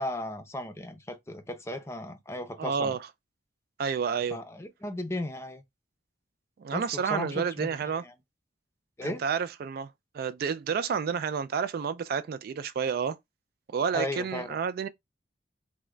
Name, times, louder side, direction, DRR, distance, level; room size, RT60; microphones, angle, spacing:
voice 1, 0.0-3.0 4.3-5.6 6.7-7.7 9.0-9.2 13.9-14.6, left 1 dB, 15° left, 0.5 m, -35 dB
voice 2, 2.6-3.1 3.8-4.4 6.6-8.0 9.0-13.2 13.7-14.9, right 6 dB, 55° right, 0.3 m, -30 dB
3.6 x 2.2 x 3.1 m
head